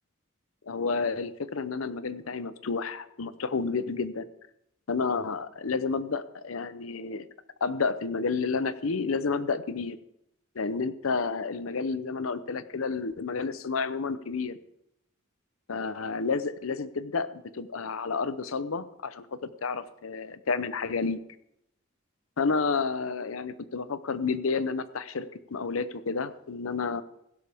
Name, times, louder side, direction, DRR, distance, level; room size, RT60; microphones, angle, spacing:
voice 1, 0.7-4.3 4.9-7.3 7.6-10.0 10.5-14.6 15.7-21.2 22.4-27.0, left 4 dB, 85° left, 14 dB, 0.7 m, -30 dB
16.0 x 12.0 x 3.5 m, 0.80 s
head